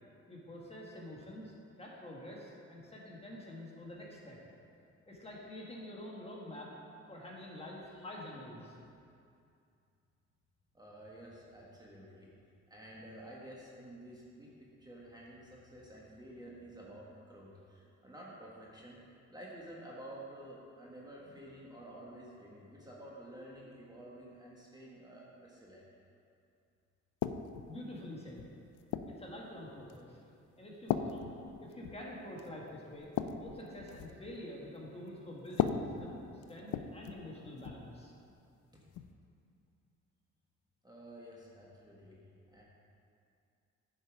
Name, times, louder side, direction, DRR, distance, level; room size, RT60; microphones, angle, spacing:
voice 1, 0.3-1.5 1.8-4.4 5.1-6.7 7.1-8.7 27.7-28.5 29.1-30.2 30.6-31.3 31.6-38.1, left 1 dB, 20° left, -4 dB, 1.7 m, -47 dB
voice 2, 10.7-12.3 12.7-19.0 19.3-25.8 40.8-42.2 42.5-42.6, right 1 dB, 15° right, -5 dB, 1.4 m, -51 dB
sound 1, 27.2-27.7 28.4-29.2 29.9-30.2 30.9-32.1 32.4-32.5 32.9-34.2 35.5-37.3 37.6-37.9 38.9-39.1, left 9 dB, 75° left, 0.5 m, -37 dB
9.3 x 5.5 x 4.9 m, 2.4 s
cardioid pair, 90°, 30 cm